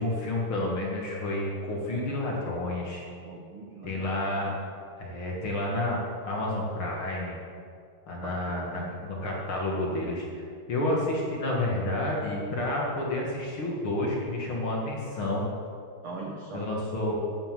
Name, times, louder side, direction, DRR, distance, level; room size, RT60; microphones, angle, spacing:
voice 1, 0.0-3.1 3.8-4.6 5.0-6.0 6.2-7.4 8.1-15.4 16.5-17.2, left 1 dB, 45° left, -3 dB, 2.0 m, -30 dB
voice 2, 3.2-4.1 8.2-8.9 16.0-16.7, right 3 dB, 75° right, 0 dB, 1.2 m, -40 dB
9.6 x 8.1 x 7.5 m, 2.4 s
omnidirectional pair, 3.9 m